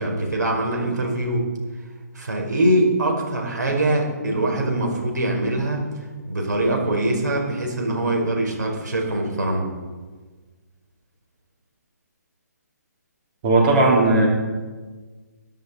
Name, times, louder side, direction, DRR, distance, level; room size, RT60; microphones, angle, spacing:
voice 1, 0.0-1.4 2.1-5.8 6.2-9.7, right 1 dB, 85° right, 1 dB, 4.5 m, -23 dB
voice 2, 13.4-14.3, right 2 dB, 35° right, -3 dB, 3.6 m, -16 dB
20.5 x 11.0 x 4.2 m, 1.4 s
hypercardioid pair, 155°, 9 cm